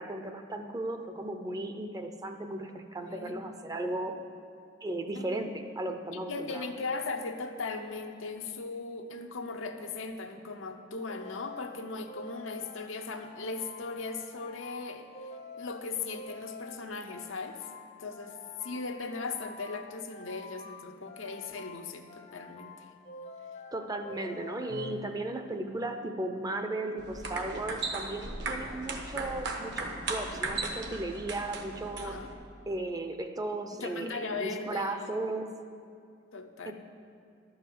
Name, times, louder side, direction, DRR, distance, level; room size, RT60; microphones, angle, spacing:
voice 1, 0.0-4.2 4.8-6.7 23.7-32.2 32.7-35.5 36.7-36.8, right 2 dB, 20° right, 6 dB, 0.5 m, -36 dB
voice 2, 3.0-3.4 5.1-5.3 6.1-15.1 15.6-17.7 18.0-18.4 18.6-22.9 32.0-32.3 33.8-35.1 36.3-36.7, left 4 dB, 85° left, 5 dB, 0.8 m, -38 dB
sound 1, 11.1-25.6, left 2 dB, 35° left, 0.6 m, -48 dB
sound 2, 27.0-32.3, right 3 dB, 60° right, 1.0 m, -37 dB
11.5 x 5.5 x 7.6 m, 2.4 s
head